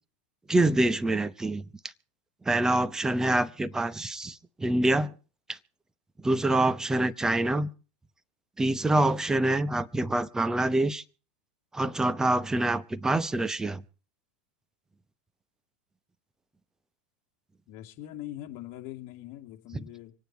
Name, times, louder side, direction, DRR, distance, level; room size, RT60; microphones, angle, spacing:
voice 1, 0.5-1.7 2.5-5.1 5.5-5.6 6.2-7.7 8.6-11.0 11.7-13.8 19.7-19.8, right 2 dB, 10° right, 0.8 m, -26 dB
voice 2, 17.7-20.1, left 14 dB, 50° left, 2.5 m, -42 dB
25.5 x 9.2 x 4.4 m
hypercardioid pair, 120°, 6 cm